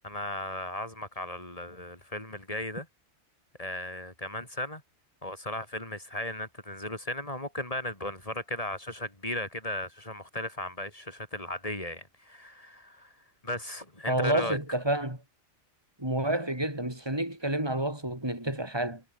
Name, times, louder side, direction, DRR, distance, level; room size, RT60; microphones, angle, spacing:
voice 1, 0.0-2.9 3.6-4.8 5.2-13.1 13.4-14.6, left 1 dB, 30° left, 5.3 m, -36 dB
voice 2, 14.1-15.2 16.0-19.0, right 1 dB, 20° right, 5.6 m, -29 dB
omnidirectional pair, 1.3 m